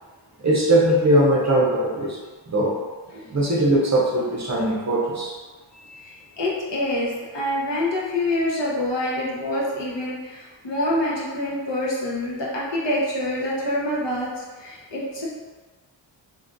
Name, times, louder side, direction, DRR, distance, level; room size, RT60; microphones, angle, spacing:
voice 1, 0.4-2.2 2.5-2.8 3.3-5.3, right 1 dB, 35° right, -3 dB, 0.6 m, -20 dB
voice 2, 5.8-15.3, left 1 dB, 65° left, -6 dB, 0.9 m, -26 dB
2.7 x 2.4 x 2.5 m, 1.4 s
cardioid pair, 60°, 46 cm